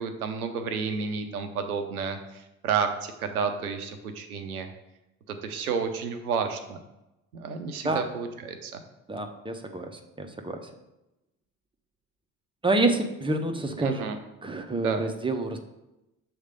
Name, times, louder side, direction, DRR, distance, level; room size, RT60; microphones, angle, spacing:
voice 1, 0.0-4.7 5.3-6.8 7.3-8.8 13.8-14.2 14.7-15.0, right 6 dB, 85° right, 7 dB, 0.7 m, -31 dB
voice 2, 9.1-10.7 12.6-15.6, right 2 dB, 10° right, 5 dB, 0.9 m, -28 dB
7.2 x 3.3 x 5.2 m, 0.94 s
figure-of-eight pair, 45°, 43 cm